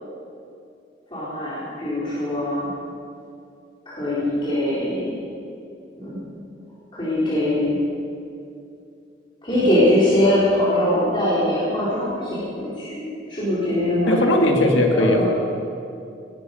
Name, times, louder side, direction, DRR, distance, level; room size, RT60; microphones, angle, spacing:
voice 1, 1.1-2.7 3.9-5.1 6.0-6.2 6.9-7.8 9.4-14.2 14.9-15.3, left 1 dB, 25° left, -11 dB, 4.3 m, -22 dB
voice 2, 14.1-15.2, left 1 dB, 85° left, 2 dB, 1.9 m, -18 dB
18.5 x 13.0 x 5.5 m, 2.5 s
head